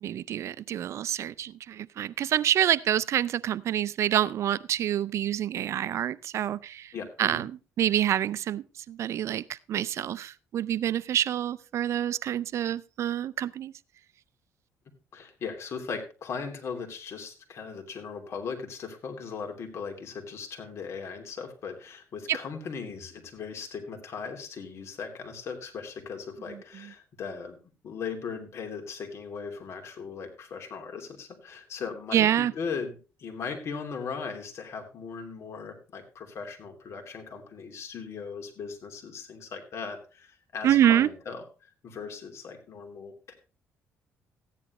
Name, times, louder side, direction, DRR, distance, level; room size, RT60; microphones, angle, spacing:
voice 1, 0.0-6.9 7.2-7.5 7.8-13.7 32.1-32.5 40.6-41.1, right 11 dB, 60° right, 19 dB, 0.5 m, -27 dB
voice 2, 6.9-7.4 15.1-27.6 27.8-43.3, left 5 dB, 55° left, 3 dB, 2.9 m, -38 dB
14.5 x 10.0 x 3.1 m, 0.33 s
cardioid pair, 105°, 6 cm